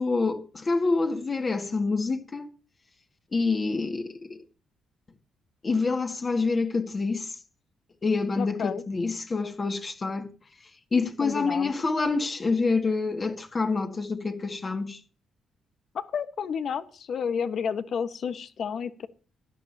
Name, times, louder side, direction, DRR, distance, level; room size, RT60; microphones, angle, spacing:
voice 1, 0.0-2.5 3.3-4.4 5.6-7.4 8.0-10.3 10.9-15.0, left 4 dB, 30° left, 2.0 m, -27 dB
voice 2, 8.4-8.8 11.2-11.7 15.9-19.1, left 7 dB, 60° left, 1.3 m, -31 dB
16.5 x 11.5 x 2.8 m
cardioid pair, 90°, 0 cm